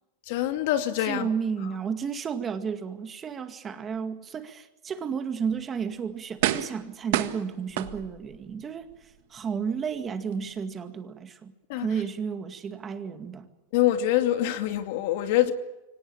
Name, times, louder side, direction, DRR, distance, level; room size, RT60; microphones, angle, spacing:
voice 1, 0.3-1.3 11.7-11.9 13.7-15.5, left 13 dB, 60° left, 2.4 m, -25 dB
voice 2, 1.0-8.9 9.3-11.5 11.8-13.5, right 6 dB, 20° right, 2.1 m, -32 dB
sound 1, 5.5-5.6 6.4-6.8 7.1-8.4 8.9-9.0, right 14 dB, 65° right, 1.7 m, -28 dB
24.5 x 18.5 x 8.9 m
supercardioid pair, 150°, 0 cm